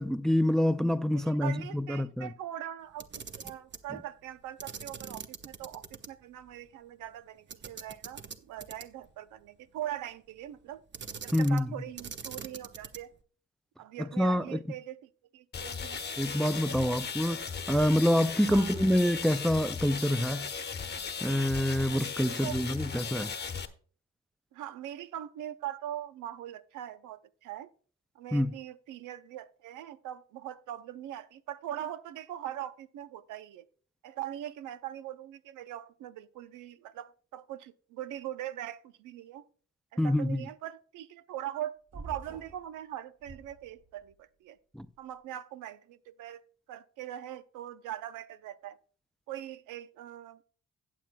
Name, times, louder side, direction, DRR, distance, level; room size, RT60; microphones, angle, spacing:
voice 1, 0.0-2.3 11.3-11.8 14.2-14.6 16.2-20.5 21.2-23.3 28.3-28.5 40.0-40.5 44.7-44.9, equal, ahead, 0.3 m, -27 dB
voice 2, 1.1-10.8 11.2-13.1 13.8-16.0 16.7-17.1 18.5-18.7 22.4-22.7 24.5-27.7 28.1-33.7 34.0-39.5 39.9-44.6 45.0-46.4 46.7-48.8 49.3-50.4, right 12 dB, 90° right, 0.7 m, -41 dB
Camera, 2.9-3.9 4.6-6.1 6.4-6.5 7.5-9.1 10.9-11.7 12.0-13.2, right 6 dB, 40° right, 0.8 m, -43 dB
sound 1, 15.5-23.7, left 6 dB, 35° left, 1.0 m, -37 dB
sound 2, 41.9-42.7 43.2-44.1, right 2 dB, 60° right, 4.5 m, -47 dB
16.5 x 7.4 x 2.2 m
cardioid pair, 90°, 30 cm